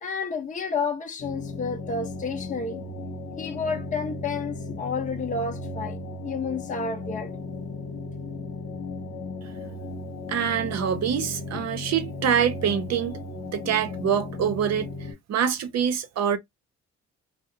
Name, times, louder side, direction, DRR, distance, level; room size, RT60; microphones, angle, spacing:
voice 1, 0.0-2.8 3.4-6.0 6.2-7.3, left 4 dB, 25° left, 0.6 m, -30 dB
sound 1, 1.2-15.1, left 2 dB, 50° left, 0.9 m, -36 dB
voice 2, 10.3-13.2 13.5-16.4, right 8 dB, 60° right, 0.6 m, -25 dB
2.4 x 2.1 x 2.7 m
cardioid pair, 90°, 30 cm